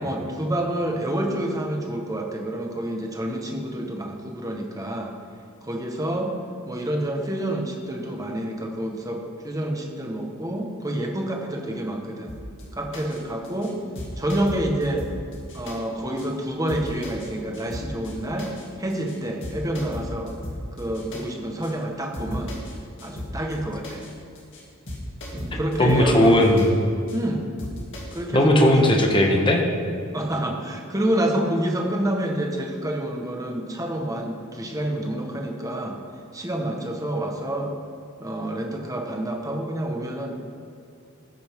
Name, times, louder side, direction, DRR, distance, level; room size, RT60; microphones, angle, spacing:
voice 1, 0.0-5.1 5.6-6.3 6.7-12.3 12.7-13.8 14.2-15.1 15.5-18.5 18.8-20.3 20.8-22.5 23.0-24.1 25.3-26.4 27.1-27.5 28.1-28.9 30.1-36.0 36.3-37.7 38.2-40.3, right 1 dB, 15° right, 1 dB, 1.2 m, -28 dB
sound 1, 12.3-12.6 12.9-13.2 13.4-13.7 14.0-15.8 16.2-16.3 16.7-17.3 17.5-18.1 18.4-18.6 18.9-19.2 19.4-21.2 21.6-21.7 22.1-22.7 23.0-23.5 23.8-24.1 24.4-24.6 24.9-26.7 27.1-27.2 27.6-28.2, equal, 60° left, 2.4 m, -35 dB
voice 2, 25.5-26.7 28.3-29.6, left 1 dB, 25° left, 2 dB, 1.2 m, -18 dB
14.0 x 9.3 x 3.6 m, 2.4 s
head